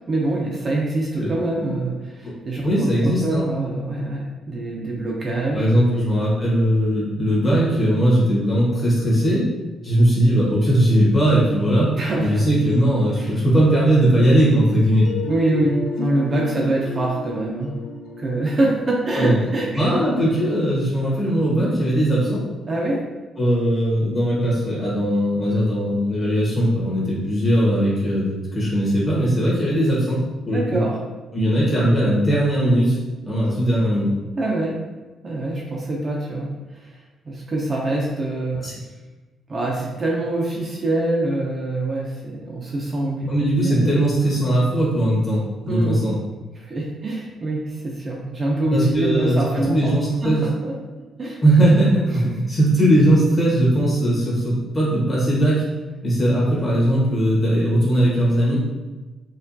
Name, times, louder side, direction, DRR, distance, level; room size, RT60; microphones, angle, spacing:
voice 1, 0.1-6.1 11.9-12.4 13.1-13.3 15.3-17.8 18.2-20.0 22.7-23.0 30.5-31.0 34.4-34.8 35.2-36.5 36.8-36.9 37.3-38.6 39.5-43.3 43.6-43.9 45.7-46.0 46.5-49.9 50.2-50.7 51.2-51.4 52.1-52.4, right 2 dB, 30° right, -3 dB, 0.5 m, -25 dB
voice 2, 2.6-3.5 5.5-9.5 9.8-11.9 12.2-15.1 19.1-19.4 19.8-22.4 23.4-30.8 31.3-33.0 33.2-34.1 38.6-38.8 43.3-46.2 48.7-50.4 51.4-55.6 56.0-58.6, right 1 dB, 25° left, -6 dB, 1.2 m, -19 dB
sound 1, 15.0-20.8, left 1 dB, 80° left, 0.8 m, -33 dB
4.3 x 2.3 x 2.6 m, 1.2 s
cardioid pair, 155°, 0 cm